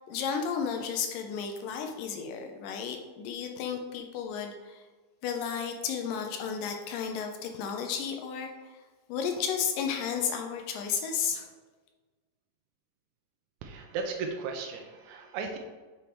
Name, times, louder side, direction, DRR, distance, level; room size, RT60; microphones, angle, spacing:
voice 1, 0.1-4.8 5.2-8.7 9.1-11.5, left 7 dB, 80° left, 4 dB, 2.2 m, -33 dB
voice 2, 13.6-15.6, right 4 dB, 85° right, 3 dB, 1.7 m, -36 dB
7.2 x 3.4 x 4.4 m, 1.3 s
omnidirectional pair, 4.1 m